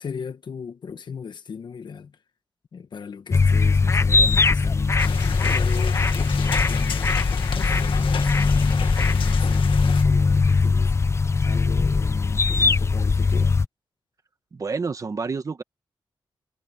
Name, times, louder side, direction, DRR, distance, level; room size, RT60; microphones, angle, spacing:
voice 1, 0.0-2.1 2.7-7.1 7.5-10.9 11.4-13.5, left 6 dB, 60° left, 1.5 m, -37 dB
sound 1, 3.3-13.6, left 4 dB, 30° left, 0.8 m, -20 dB
sound 2, 5.0-10.0, left 7 dB, 85° left, 1.6 m, -34 dB
voice 2, 14.5-15.6, right 4 dB, 40° right, 1.5 m, -29 dB
wide cardioid pair, 115°, 9 cm